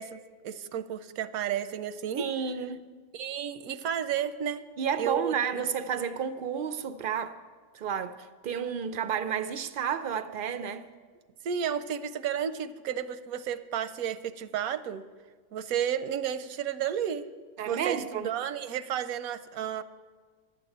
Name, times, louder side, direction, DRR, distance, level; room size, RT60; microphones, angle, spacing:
voice 1, 0.0-2.3 3.1-4.6 5.0-5.6 11.4-15.0 15.5-17.3 17.7-19.8, right 9 dB, 85° right, 1.1 m, -32 dB
voice 2, 2.2-2.9 4.8-7.4 7.7-8.2 8.4-10.9 17.6-18.3, right 7 dB, 65° right, 0.5 m, -31 dB
11.5 x 7.6 x 9.0 m
omnidirectional pair, 1.5 m